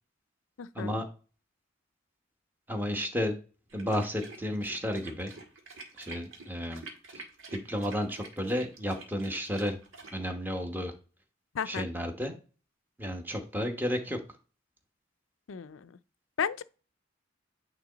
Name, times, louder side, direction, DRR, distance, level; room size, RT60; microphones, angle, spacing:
voice 1, 0.6-0.9 11.5-11.9 15.5-15.9 16.4-16.6, left 7 dB, 80° left, 0.5 m, -33 dB
voice 2, 2.7-3.3 3.7-5.3 6.0-6.8 7.5-9.8 10.1-10.9 11.7-12.3 13.0-14.2, equal, 10° right, 1.1 m, -32 dB
sound 1, 3.7-10.2, right 3 dB, 90° right, 1.7 m, -48 dB
9.1 x 3.0 x 3.9 m
head